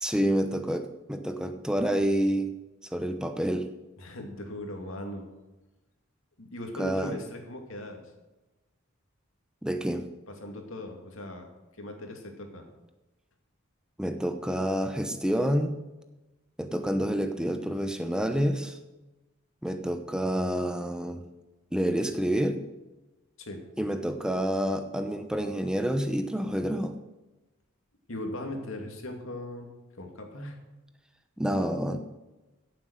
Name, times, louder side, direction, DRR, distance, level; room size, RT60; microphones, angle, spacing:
voice 1, 0.0-2.5 2.9-3.7 6.8-7.1 9.6-10.0 14.0-15.7 16.6-18.8 19.6-21.2 21.7-22.6 23.8-26.9 31.4-32.0, equal, 5° right, 7 dB, 0.9 m, -28 dB
voice 2, 4.0-5.3 6.4-8.0 10.3-11.5 11.8-12.7 23.4-23.6 28.1-29.7 30.0-30.6, left 1 dB, 65° left, 3 dB, 2.5 m, -39 dB
15.0 x 7.6 x 6.5 m, 1.1 s
head